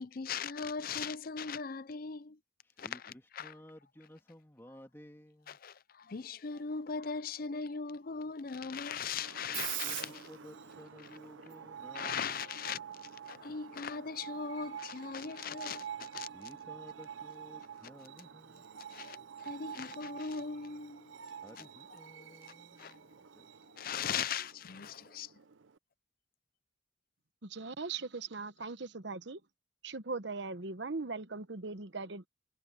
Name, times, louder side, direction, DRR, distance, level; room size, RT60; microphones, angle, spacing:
voice 1, 0.0-2.4 2.8-3.5 5.5-10.3 11.9-16.3 18.7-21.1 21.6-21.7 22.2-22.3 22.8-23.0 23.8-25.3, left 6 dB, 50° left, 0.5 m, -39 dB
voice 2, 2.6-5.6 9.5-12.4 16.3-18.7 21.4-23.6, equal, 10° left, 2.1 m, -55 dB
Screech, 9.2-25.8, right 10 dB, 80° right, 0.6 m, -46 dB
voice 3, 27.4-29.4 29.8-32.3, right 4 dB, 65° right, 1.0 m, -39 dB
head